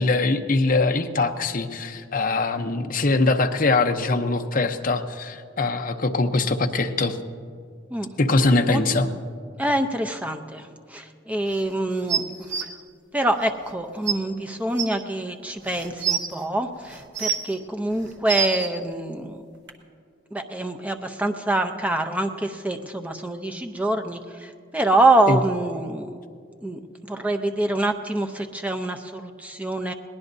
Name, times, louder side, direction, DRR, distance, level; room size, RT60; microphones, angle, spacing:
voice 1, 0.0-7.2 8.2-9.1 25.3-25.4, left 3 dB, 45° left, 5 dB, 0.8 m, -22 dB
voice 2, 9.6-12.3 13.1-19.4 20.3-26.1 26.6-29.9, right 2 dB, 5° right, 6 dB, 0.6 m, -25 dB
sound 1, 12.1-12.6 13.7-13.8 14.1-14.2 14.8-14.9 15.7-16.3 16.9-17.5 18.0-18.7 19.7-19.8, right 7 dB, 60° right, 1.1 m, -25 dB
21.5 x 18.5 x 2.7 m, 2.2 s
head